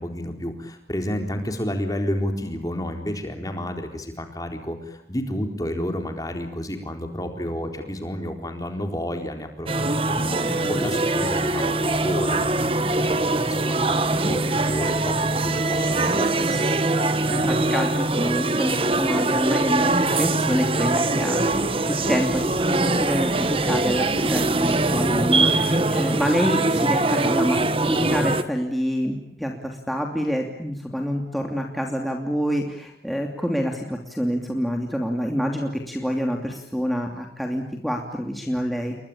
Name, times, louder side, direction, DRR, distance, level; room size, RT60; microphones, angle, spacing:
voice 1, 0.0-16.7, equal, 20° left, 4 dB, 4.1 m, -31 dB
sound 1, 9.7-28.4, right 2 dB, 30° right, 1.4 m, -22 dB
voice 2, 10.5-10.8 17.1-21.5 21.8-39.0, equal, ahead, 1 dB, 2.8 m, -27 dB
29.5 x 23.5 x 8.7 m, 0.73 s
head